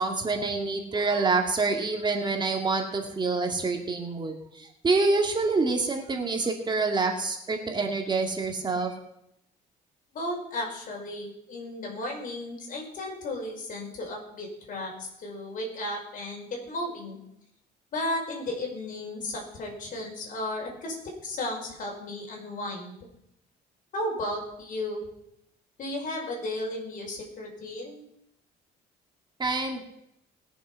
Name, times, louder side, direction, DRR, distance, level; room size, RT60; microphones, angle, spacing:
voice 1, 0.0-9.0 29.4-29.8, right 3 dB, 25° right, 3 dB, 2.1 m, -27 dB
voice 2, 10.1-17.2 17.9-20.9 21.2-23.0 23.9-25.0 25.8-28.0, left 1 dB, 55° left, 0 dB, 5.2 m, -34 dB
20.5 x 7.2 x 5.7 m, 0.80 s
cardioid pair, 110°, 17 cm